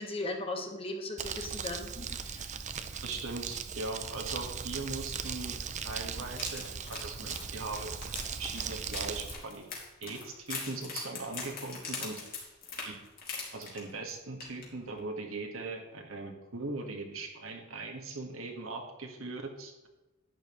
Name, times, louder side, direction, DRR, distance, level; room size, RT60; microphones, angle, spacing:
voice 1, 0.0-2.5 6.1-6.3 7.2-7.3, left 2 dB, 30° left, 3 dB, 1.3 m, -38 dB
Crumpling crinkling, 1.2-9.3, right 6 dB, 35° right, 0.6 m, -38 dB
voice 2, 3.0-5.6 5.8-7.9 8.4-9.6 10.0-12.2 12.8-12.9 13.5-19.9, right 3 dB, 75° right, 2 dB, 1.6 m, -40 dB
sound 1, 6.4-14.1 14.4-14.7 15.0-15.1, left 4 dB, 45° left, 2.5 m, -41 dB
11.0 x 9.1 x 3.1 m, 1.0 s
head